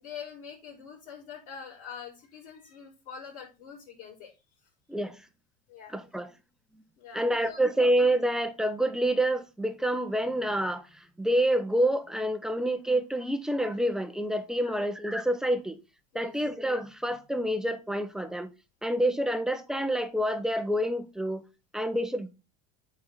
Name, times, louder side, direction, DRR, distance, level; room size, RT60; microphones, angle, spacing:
voice 1, 0.0-4.5 5.7-5.9 7.0-7.6 14.6-14.7 16.1-16.5, left 7 dB, 55° left, 5.0 m, -45 dB
voice 2, 5.9-6.3 7.1-15.8 16.1-18.5 18.8-21.5 21.7-22.3, right 1 dB, 5° right, 1.0 m, -27 dB
8.7 x 4.4 x 5.5 m
supercardioid pair, 105°, 18 cm